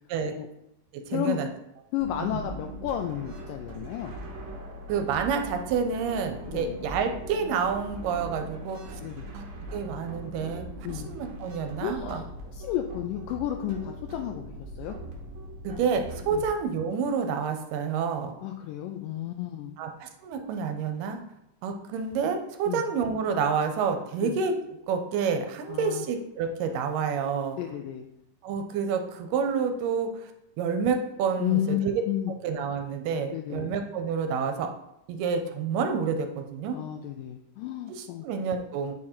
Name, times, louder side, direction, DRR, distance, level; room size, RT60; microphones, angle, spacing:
voice 1, 0.9-1.5 2.2-2.4 4.9-9.0 9.3-10.7 11.1-12.2 15.6-18.4 19.8-21.2 21.6-24.5 24.9-27.6 28.4-30.3 30.6-32.0 32.4-34.7 35.1-36.8 37.9-38.9, right 6 dB, 80° right, 6 dB, 2.2 m, -29 dB
voice 2, 1.9-4.1 6.5-6.8 9.0-9.3 10.8-11.1 11.8-12.2 12.5-15.0 16.3-16.4 18.4-19.7 22.7-22.8 24.2-24.4 25.7-26.1 27.6-28.1 31.4-32.3 33.3-33.8 36.7-38.3, left 11 dB, 85° left, 4 dB, 2.1 m, -32 dB
sound 1, 2.0-16.5, right 1 dB, 60° right, 1.6 m, -40 dB
8.4 x 3.7 x 4.3 m, 0.83 s
omnidirectional pair, 3.9 m